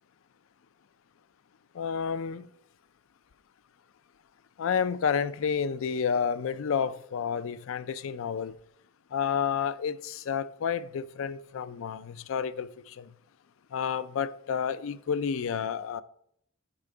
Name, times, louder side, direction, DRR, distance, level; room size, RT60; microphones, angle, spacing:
voice 1, 1.7-2.5 4.6-8.5 9.1-13.1 13.7-16.0, left 7 dB, 65° left, 0.4 m, -30 dB
8.6 x 5.7 x 3.8 m
head